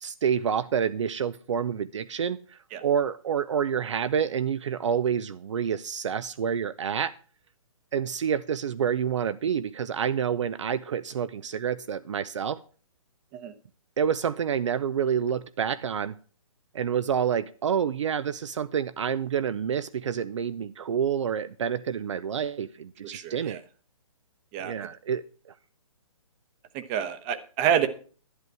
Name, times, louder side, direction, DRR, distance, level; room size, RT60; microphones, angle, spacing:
voice 1, 0.0-7.1 7.9-12.6 14.0-16.1 16.7-23.6 24.6-25.2, right 8 dB, 60° right, 14 dB, 0.6 m, -28 dB
voice 2, 23.1-23.6 24.5-24.9 26.7-27.9, right 9 dB, 20° right, 12 dB, 0.9 m, -28 dB
11.0 x 10.5 x 4.7 m, 0.40 s
hypercardioid pair, 160°, 17 cm